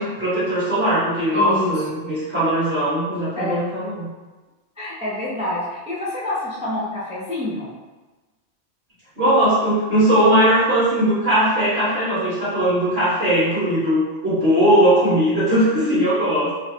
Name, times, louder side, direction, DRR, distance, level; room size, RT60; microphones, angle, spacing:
voice 1, 0.0-4.0 9.2-16.5, right 1 dB, 55° right, -12 dB, 1.6 m, -19 dB
voice 2, 1.3-1.8 3.4-3.7 4.8-7.7, left 1 dB, 10° right, -7 dB, 0.4 m, -27 dB
3.2 x 3.1 x 2.8 m, 1.2 s
omnidirectional pair, 1.3 m